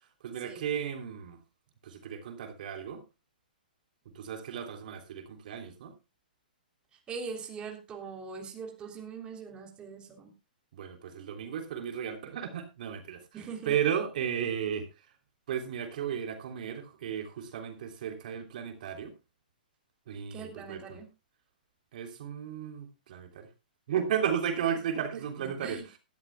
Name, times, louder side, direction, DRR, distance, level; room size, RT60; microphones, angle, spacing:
voice 1, 0.2-1.4 1.8-3.0 4.1-5.9 10.7-13.2 13.6-14.9 15.5-19.1 20.1-21.0 21.9-23.5 23.9-26.0, right 8 dB, 60° right, 3.4 m, -34 dB
voice 2, 7.1-10.3 13.3-13.7 20.3-21.1 25.4-25.9, right 5 dB, 20° right, 3.3 m, -42 dB
17.5 x 13.0 x 2.3 m
hypercardioid pair, 135°, 5 cm